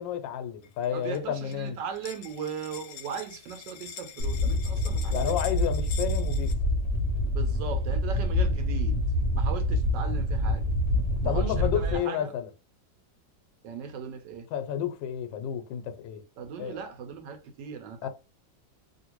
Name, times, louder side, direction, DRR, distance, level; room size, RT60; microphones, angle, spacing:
voice 1, 0.0-1.8 5.1-6.5 11.2-12.5 14.5-16.2 16.6-16.8 18.0-18.1, left 9 dB, 90° left, 1.3 m, -31 dB
sound 1, 0.6-1.2 1.5-6.5, left 6 dB, 75° left, 1.1 m, -44 dB
voice 2, 0.9-5.4 7.3-9.0 9.3-10.7 11.2-12.3 13.6-14.5 16.4-18.1, right 7 dB, 75° right, 1.3 m, -38 dB
sound 2, 4.2-12.0, left 1 dB, 55° left, 0.8 m, -26 dB
3.1 x 2.6 x 2.9 m
omnidirectional pair, 2.0 m